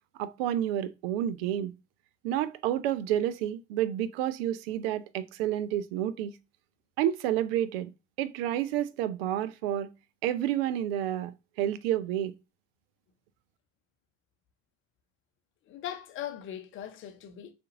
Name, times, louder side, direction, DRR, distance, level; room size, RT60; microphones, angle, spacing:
voice 1, 0.2-1.7 2.2-6.3 7.0-7.9 8.2-9.9 10.2-11.3 11.6-12.3, right 11 dB, 50° right, 0.5 m, -29 dB
voice 2, 15.7-17.5, left 10 dB, 30° left, 0.8 m, -39 dB
6.4 x 2.5 x 2.5 m
figure-of-eight pair, 70°, 40 cm